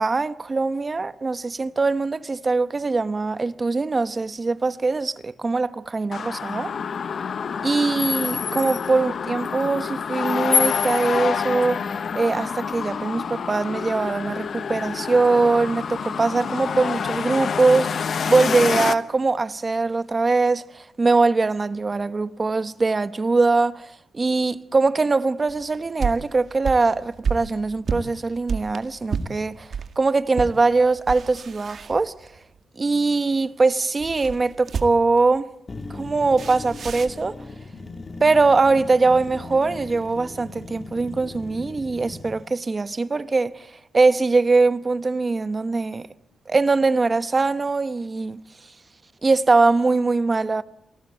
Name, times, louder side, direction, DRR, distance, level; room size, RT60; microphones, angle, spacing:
voice 1, 0.0-6.7 7.6-23.8 24.1-29.7 30.0-32.1 32.8-35.5 35.9-37.4 38.2-43.7 43.9-46.1 46.5-48.4 49.2-50.6, right 3 dB, 30° right, 1.0 m, -22 dB
sound 1, 6.1-19.0, left 6 dB, 55° left, 1.1 m, -27 dB
sound 2, 25.5-29.9 30.3-30.6 31.0-32.4 34.0-35.2 36.4-37.2, right 6 dB, 55° right, 2.0 m, -30 dB
sound 3, 35.7-42.4, left 3 dB, 30° left, 2.0 m, -38 dB
28.0 x 18.5 x 9.0 m
cardioid pair, 115°, 0 cm